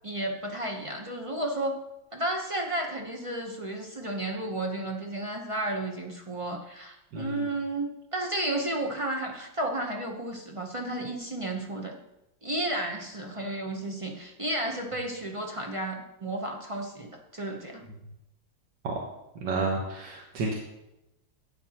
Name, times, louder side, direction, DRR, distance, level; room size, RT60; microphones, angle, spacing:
voice 1, 0.0-1.8 2.1-11.9 12.4-17.8, right 1 dB, 30° right, 1 dB, 0.6 m, -32 dB
voice 2, 7.1-7.5 18.8-19.0 19.4-20.5, right 3 dB, 80° right, -1 dB, 1.8 m, -30 dB
12.0 x 9.2 x 2.9 m, 0.91 s
omnidirectional pair, 2.0 m